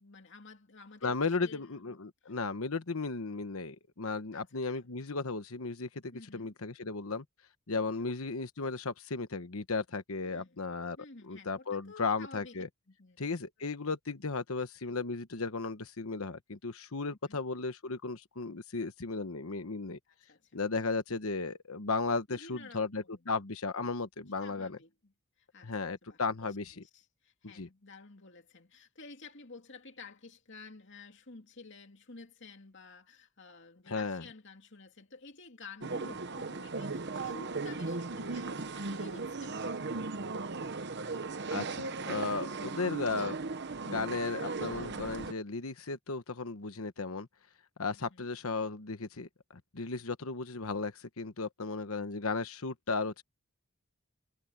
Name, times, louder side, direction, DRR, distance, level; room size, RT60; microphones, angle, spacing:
voice 1, 0.0-2.0 2.2-2.3 4.3-4.5 6.1-6.5 8.0-8.1 10.2-10.6 11.0-12.6 12.9-13.2 14.8-15.0 17.1-17.4 20.1-20.6 22.3-23.3 24.4-25.1 25.4-40.6 47.9-48.3, left 3 dB, 55° left, 2.7 m, -52 dB
voice 2, 1.0-7.2 7.7-11.0 11.3-12.7 13.2-20.0 20.5-24.8 25.6-26.8 27.4-27.7 33.9-34.2 41.5-43.4 43.8-47.3 47.8-53.2, left 4 dB, 75° left, 1.1 m, -35 dB
sound 1, 35.8-45.3, right 3 dB, 50° right, 1.0 m, -37 dB
head